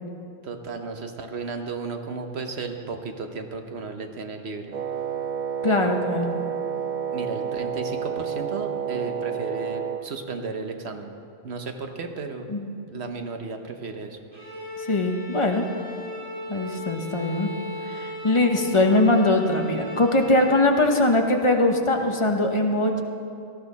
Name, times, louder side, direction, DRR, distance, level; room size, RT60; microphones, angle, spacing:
voice 1, 0.4-4.7 7.1-11.1 11.4-12.5 12.9-14.2, right 4 dB, 85° right, 5 dB, 1.3 m, -34 dB
Wind instrument woodwind instrument, 4.7-10.1, right 7 dB, 55° right, 0.6 m, -30 dB
voice 2, 5.6-6.3 12.5-12.8 14.8-15.6 16.5-17.5 17.8-23.0, left 2 dB, 30° left, 3 dB, 1.0 m, -21 dB
Bowed string instrument, 14.3-20.7, left 2 dB, 70° right, 3.2 m, -37 dB
18.0 x 13.0 x 4.1 m, 2.6 s
omnidirectional pair, 1.1 m